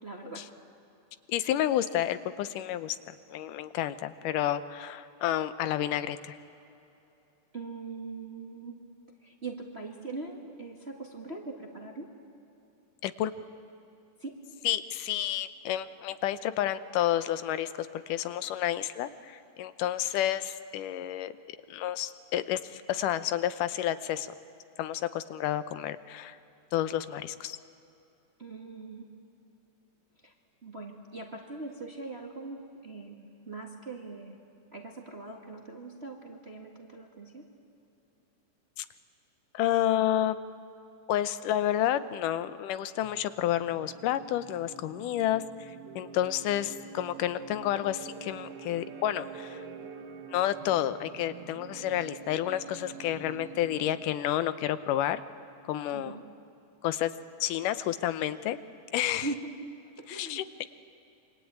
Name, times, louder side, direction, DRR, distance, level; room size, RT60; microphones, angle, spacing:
voice 1, 0.0-0.4 1.4-1.5 7.5-8.8 9.2-12.1 14.2-14.3 28.4-29.1 30.2-30.3 30.6-34.4 34.7-37.4 55.9-56.2 59.1-59.4 60.0-60.4, right 3 dB, 30° right, 1 dB, 1.3 m, -41 dB
voice 2, 1.3-3.0 3.3-6.4 13.0-13.3 14.6-21.3 21.7-24.3 24.8-26.4 26.7-27.6 38.8-38.9 39.5-40.4 41.1-49.6 50.3-55.2 55.7-56.2 56.8-57.1 57.4-58.6 58.9-59.3 60.1-60.6, left 12 dB, 85° left, 12 dB, 2.4 m, -30 dB
sound 1, 43.0-54.4, right 6 dB, 55° right, 1.8 m, -46 dB
27.0 x 24.0 x 8.9 m, 2.8 s
omnidirectional pair, 3.6 m